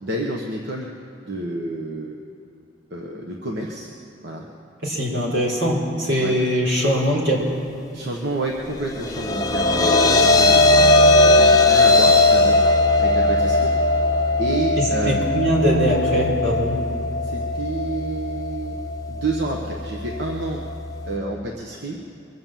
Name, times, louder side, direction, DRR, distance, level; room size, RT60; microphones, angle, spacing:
voice 1, 0.0-0.9 1.3-2.1 2.9-3.9 4.2-4.4 6.2-6.3 7.9-12.6 13.0-13.7 14.4-15.2 17.2-18.8 19.1-20.6 21.1-22.0, right 2 dB, 60° right, 0 dB, 1.2 m, -29 dB
voice 2, 4.8-7.4 14.8-16.8, equal, 85° right, -3 dB, 4.1 m, -21 dB
sound 1, 8.8-21.1, left 2 dB, 20° left, 0.7 m, -19 dB
23.0 x 7.8 x 7.5 m, 2.9 s
head